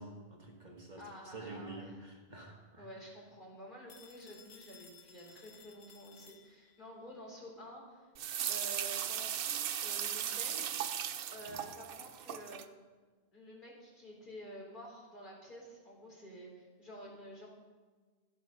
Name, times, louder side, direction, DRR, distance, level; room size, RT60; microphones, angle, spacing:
voice 1, 0.0-2.9 11.5-11.6, right 2 dB, 45° right, 0 dB, 1.8 m, -48 dB
voice 2, 1.0-1.9 2.8-8.1 8.5-10.7 11.3-12.8 13.3-17.5, equal, 50° left, -3 dB, 4.2 m, -50 dB
Telephone, 3.9-6.9, left 6 dB, 70° left, 1.3 m, -58 dB
sound 1, 8.2-12.7, right 9 dB, 65° right, 0.8 m, -37 dB
14.0 x 11.0 x 5.5 m, 1.4 s
omnidirectional pair, 1.1 m